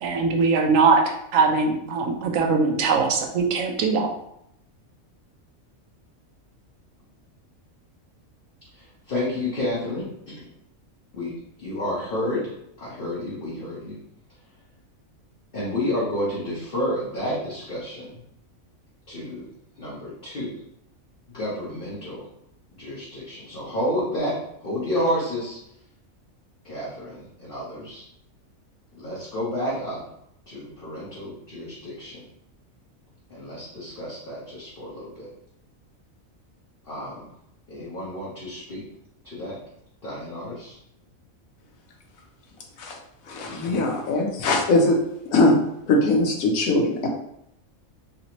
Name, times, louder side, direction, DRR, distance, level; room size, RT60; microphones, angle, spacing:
voice 1, 0.0-4.1, right 4 dB, 70° right, 2 dB, 0.9 m, -21 dB
voice 2, 8.7-10.5 11.1-11.3 11.6-12.5 12.8-14.0 15.5-18.2 19.1-19.5 19.8-20.6 21.3-22.3 22.7-25.6 26.6-28.0 28.9-30.0 30.5-32.2 33.3-35.3 36.8-37.3 37.7-38.8 39.2-39.6 40.0-40.7, left 1 dB, 45° left, -8 dB, 1.0 m, -30 dB
voice 3, 43.3-45.0 45.3-47.1, left 2 dB, 85° left, 1 dB, 1.1 m, -21 dB
3.3 x 2.7 x 2.9 m, 0.77 s
omnidirectional pair, 1.4 m